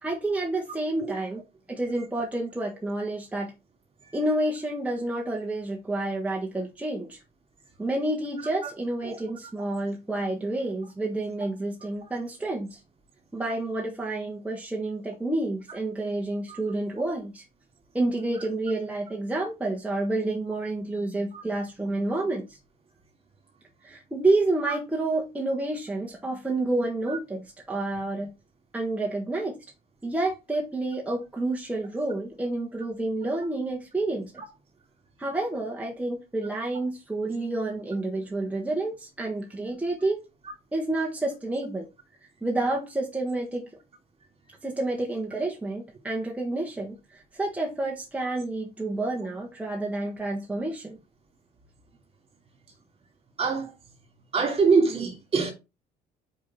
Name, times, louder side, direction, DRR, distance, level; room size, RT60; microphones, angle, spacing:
voice 1, 0.0-1.4 1.7-3.5 4.1-7.2 7.8-12.8 13.3-17.4 17.9-22.6 23.8-27.4 27.7-28.3 28.7-29.5 30.0-34.3 35.2-40.2 40.7-41.9 42.4-43.6 44.6-51.0, right 2 dB, 10° right, 1.5 m, -29 dB
voice 2, 53.4-53.7 54.3-55.5, right 4 dB, 35° right, 2.8 m, -24 dB
5.3 x 5.1 x 4.3 m
cardioid pair, 110°, 17 cm